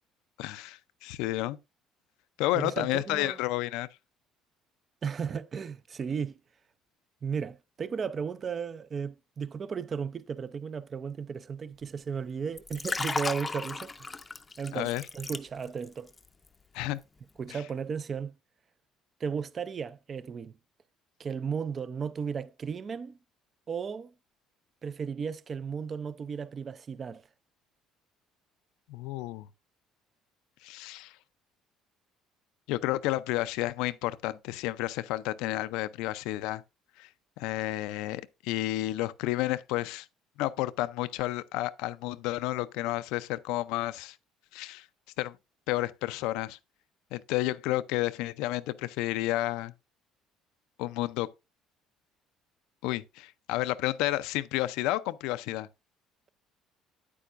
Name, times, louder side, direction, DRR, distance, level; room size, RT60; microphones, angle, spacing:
voice 1, 0.4-1.6 2.4-3.9 14.7-15.0 16.7-17.0 17.5-17.6 28.9-29.5 30.6-31.1 32.7-36.6 37.0-37.1 37.4-40.1 40.4-44.2 44.5-44.8 45.2-45.4 45.7-46.6 47.1-49.7 50.8-51.3 52.8-55.7, left 17 dB, 85° left, 0.5 m, -31 dB
voice 2, 2.5-3.4 5.0-6.4 7.2-14.1 14.6-16.1 17.4-18.3 19.2-20.5 21.2-23.2 23.7-24.1 24.8-27.2, right 6 dB, 35° right, 0.5 m, -35 dB
Liquid, 12.5-15.9 16.2-16.5, left 3 dB, 20° left, 0.6 m, -35 dB
9.0 x 8.4 x 2.5 m
cardioid pair, 110°, 0 cm